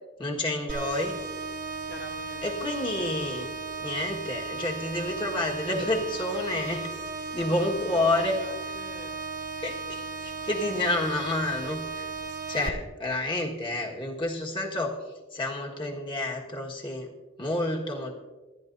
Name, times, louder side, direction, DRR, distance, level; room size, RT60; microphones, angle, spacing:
voice 1, 0.2-1.1 2.4-3.5 3.8-6.9 7.3-8.4 8.6-8.7 9.6-12.1 12.5-15.0 15.3-17.1 17.4-18.2, left 2 dB, 25° left, 0 dB, 1.6 m, -29 dB
sound 1, 0.7-12.7, right 4 dB, 40° right, 1.2 m, -36 dB
voice 2, 1.8-2.4 2.9-3.1 7.4-9.2 12.5-12.8, left 1 dB, 55° left, 1 dB, 2.0 m, -44 dB
26.0 x 10.5 x 2.7 m, 1.2 s
head